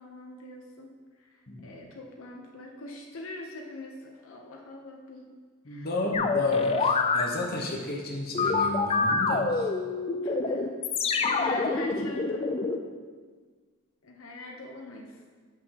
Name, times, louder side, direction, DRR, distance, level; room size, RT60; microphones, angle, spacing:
voice 1, 0.0-5.3 5.7-5.9 10.1-10.7 11.4-12.9 14.0-15.2, left 2 dB, 75° left, 0 dB, 0.7 m, -43 dB
voice 2, 5.6-9.7, left 2 dB, 45° left, -1 dB, 0.9 m, -32 dB
sound 1, 6.1-7.2 8.3-12.8, left 4 dB, 25° left, 0.3 m, -26 dB
7.6 x 6.3 x 2.9 m, 1.5 s
head